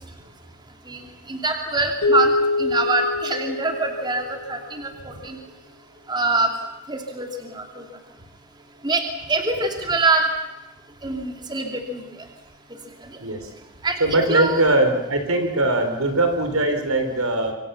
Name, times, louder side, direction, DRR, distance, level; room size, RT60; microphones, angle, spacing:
voice 1, 1.3-5.4 6.1-6.5 6.9-7.8 8.8-9.0 9.3-10.2 11.0-12.0 13.8-14.6, right 3 dB, 20° right, 3 dB, 2.7 m, -24 dB
sound 1, 2.0-4.6, left 2 dB, 60° left, 1.9 m, -24 dB
voice 2, 14.0-17.5, right 2 dB, 80° right, 6 dB, 4.4 m, -21 dB
26.0 x 25.0 x 7.1 m, 0.97 s
head